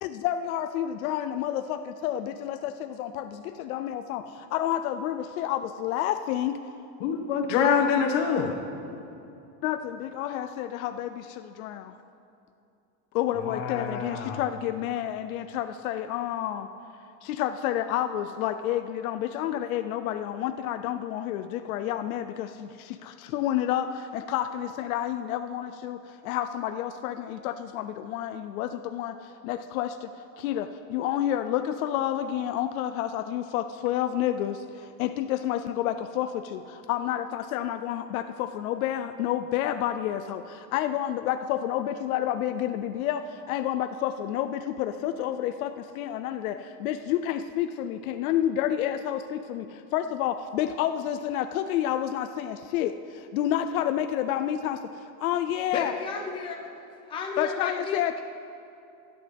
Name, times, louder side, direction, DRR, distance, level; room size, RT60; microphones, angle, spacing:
voice 1, 0.0-6.6 9.6-11.9 13.1-16.7 17.2-29.1 29.4-30.1 30.4-54.8 55.2-55.9 57.4-58.2, left 11 dB, 85° left, 9 dB, 0.7 m, -29 dB
voice 2, 7.0-8.6 13.3-14.4, left 6 dB, 60° left, 3 dB, 1.8 m, -25 dB
voice 3, 55.7-56.7 57.1-58.0, left 5 dB, 10° left, 0 dB, 0.7 m, -33 dB
26.0 x 11.0 x 3.5 m, 2.6 s
supercardioid pair, 175°, 41 cm